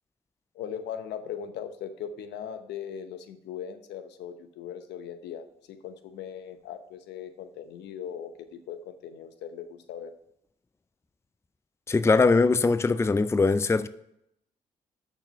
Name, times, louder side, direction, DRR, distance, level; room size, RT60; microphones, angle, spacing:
voice 1, 0.5-10.1, left 8 dB, 75° left, 0.8 m, -39 dB
voice 2, 11.9-13.9, left 3 dB, 15° left, 0.4 m, -21 dB
6.5 x 6.1 x 5.5 m
hypercardioid pair, 45°, 18 cm